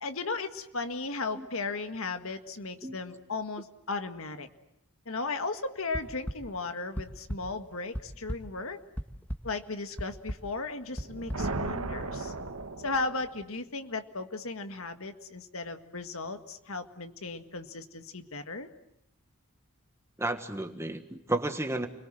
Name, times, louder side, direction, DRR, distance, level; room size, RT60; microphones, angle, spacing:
voice 1, 0.0-4.5 5.1-8.8 9.4-12.3 12.8-18.7, left 3 dB, 70° left, 8 dB, 1.8 m, -36 dB
sound 1, 5.9-6.3 6.9-7.4 7.8-8.4 9.0-9.4 10.0-10.4 11.0-11.4, equal, 5° left, 1.7 m, -34 dB
sound 2, 10.9-13.5, right 2 dB, 80° right, 1.6 m, -36 dB
voice 2, 20.2-21.9, right 2 dB, 10° right, 6 dB, 1.6 m, -32 dB
30.0 x 22.5 x 7.7 m, 0.79 s
head